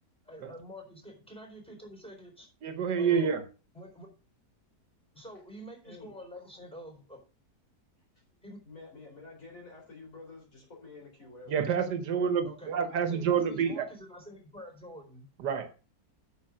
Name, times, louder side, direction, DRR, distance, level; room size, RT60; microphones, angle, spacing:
voice 1, 0.3-2.5 3.0-3.4 3.7-4.1 5.1-7.2 8.4-8.6 12.4-15.3, equal, 5° left, 4.0 m, -47 dB
voice 2, 2.6-3.4 11.5-13.9 15.4-15.8, right 7 dB, 90° right, 1.7 m, -28 dB
voice 3, 5.8-6.2 8.7-11.5 12.2-12.3, left 3 dB, 50° left, 4.3 m, -49 dB
8.8 x 6.9 x 5.0 m
omnidirectional pair, 1.8 m